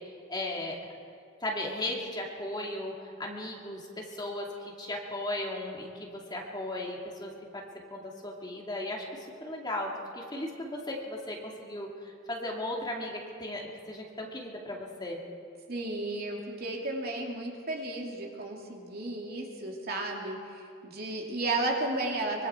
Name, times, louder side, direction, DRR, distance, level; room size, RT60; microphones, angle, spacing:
voice 1, 0.3-0.8 1.4-2.9 3.2-7.6 7.9-15.2, left 1 dB, 20° left, -1 dB, 2.5 m, -36 dB
voice 2, 15.7-22.5, right 2 dB, 50° right, 0 dB, 2.8 m, -33 dB
24.5 x 23.5 x 4.5 m, 2.3 s
head